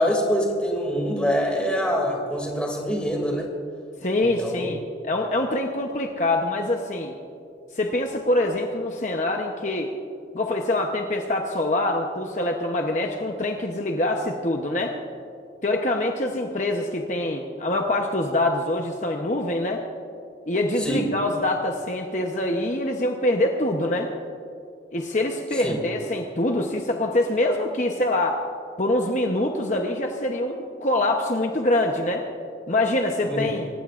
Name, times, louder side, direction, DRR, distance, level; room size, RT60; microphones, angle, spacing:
voice 1, 0.0-3.5 4.4-4.7 20.8-21.1 25.6-25.8 33.3-33.6, equal, 5° left, 0 dB, 2.5 m, -25 dB
voice 2, 4.0-7.1 7.7-9.9 10.3-15.0 15.6-19.8 20.5-24.1 24.9-28.4 28.8-32.2 32.7-33.7, left 1 dB, 45° left, 2 dB, 0.9 m, -24 dB
28.0 x 15.5 x 2.5 m, 2.5 s
head